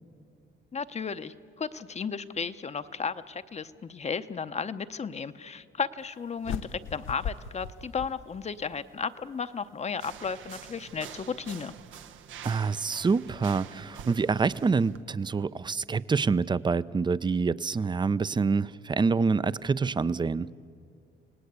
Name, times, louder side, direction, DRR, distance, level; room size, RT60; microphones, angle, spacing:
voice 1, 0.7-11.7, left 5 dB, 35° left, 11 dB, 0.7 m, -34 dB
sound 1, 6.4-8.8, left 7 dB, 80° left, 0.8 m, -38 dB
sound 2, 10.0-15.0, right 9 dB, 75° right, 1.0 m, -46 dB
voice 2, 12.4-20.5, right 4 dB, 20° right, 17 dB, 0.5 m, -26 dB
27.5 x 18.5 x 8.2 m, 2.3 s
cardioid pair, 90°, 20 cm